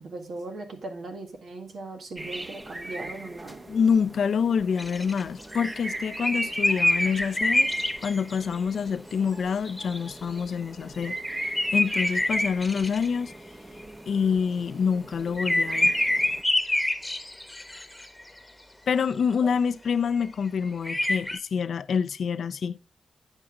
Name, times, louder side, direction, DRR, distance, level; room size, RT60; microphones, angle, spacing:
voice 1, 0.0-3.6, right 2 dB, 75° right, 1.7 m, -38 dB
sound 1, 2.2-16.4, right 1 dB, 25° right, 0.9 m, -39 dB
voice 2, 3.7-11.2 11.7-13.3 14.1-15.9 18.9-22.8, left 6 dB, 80° left, 0.4 m, -26 dB
sound 2, 4.8-5.7 6.1-8.6 9.7-10.4 11.0-11.1 11.4-13.3 15.4-18.2 20.8-21.4, left 1 dB, 10° left, 1.2 m, -26 dB
9.0 x 7.2 x 3.7 m
cardioid pair, 70°, 0 cm